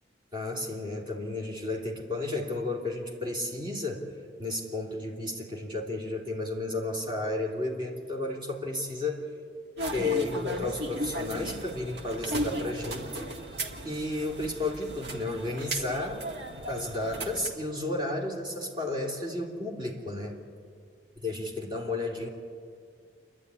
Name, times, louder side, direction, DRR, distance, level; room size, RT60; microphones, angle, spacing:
voice 1, 0.3-4.1 4.4-9.3 9.9-16.3 16.7-20.4 21.2-22.3, left 2 dB, 25° right, -1 dB, 2.9 m, -32 dB
sound 1, 9.8-17.5, right 1 dB, 65° right, 1.8 m, -36 dB
28.0 x 11.5 x 9.7 m, 2.2 s
head